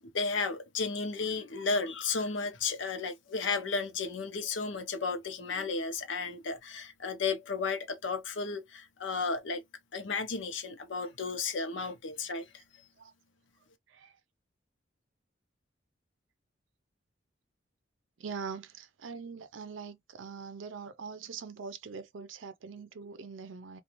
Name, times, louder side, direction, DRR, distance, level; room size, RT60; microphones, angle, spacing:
voice 1, 0.1-9.6 9.9-12.4, left 4 dB, 80° left, 0.6 m, -33 dB
voice 2, 13.9-14.2 18.2-23.8, right 5 dB, 85° right, 0.5 m, -43 dB
2.5 x 2.3 x 2.8 m
head